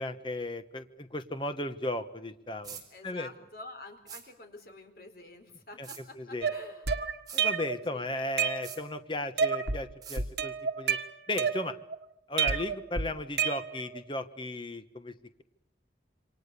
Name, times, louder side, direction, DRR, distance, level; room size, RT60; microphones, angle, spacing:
voice 1, 0.0-3.3 5.8-5.9 6.2-6.5 7.3-11.0 11.3-11.8 12.3-15.1, left 1 dB, 30° left, 9 dB, 1.3 m, -35 dB
sound 1, 2.6-2.9 4.1-4.2 5.8-6.0 7.3-7.4 8.6-8.8 10.0-10.2, right 7 dB, 20° right, 4.4 m, -44 dB
voice 2, 2.9-6.9 7.9-8.1, left 2 dB, 55° left, 6 dB, 4.2 m, -48 dB
sound 2, 6.4-7.8 8.2-9.0 9.4-9.8 10.2-12.0 12.4-14.0, right 6 dB, 75° right, 1.6 m, -30 dB
28.0 x 25.0 x 6.9 m, 0.80 s
head